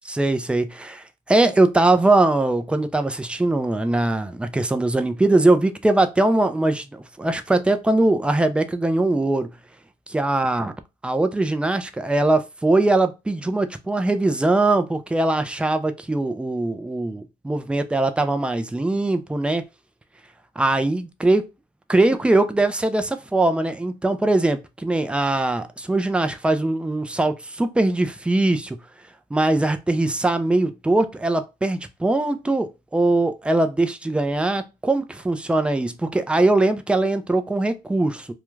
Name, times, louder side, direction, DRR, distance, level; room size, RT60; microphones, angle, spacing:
voice 1, 0.1-9.5 10.1-10.7 11.0-19.6 20.6-21.5 21.9-28.8 29.3-38.3, right 2 dB, 5° right, 0.3 m, -21 dB
2.3 x 2.2 x 3.1 m
cardioid pair, 110°, 17 cm